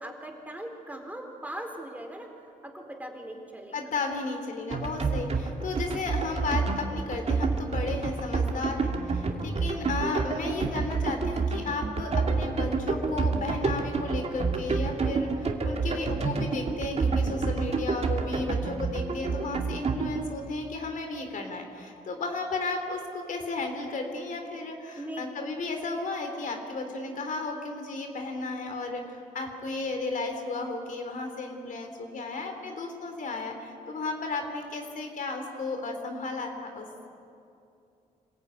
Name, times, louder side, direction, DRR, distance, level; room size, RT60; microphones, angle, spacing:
voice 1, 0.0-2.3 2.6-3.8 9.1-9.4 14.9-15.2 25.0-25.2, right 1 dB, 10° right, 3 dB, 3.8 m, -40 dB
voice 2, 3.7-37.1, left 3 dB, 60° left, 4 dB, 3.3 m, -34 dB
sound 1, 4.7-20.3, right 4 dB, 45° right, 2.5 m, -28 dB
26.0 x 15.0 x 9.3 m, 2.6 s
cardioid pair, 80°, 15 cm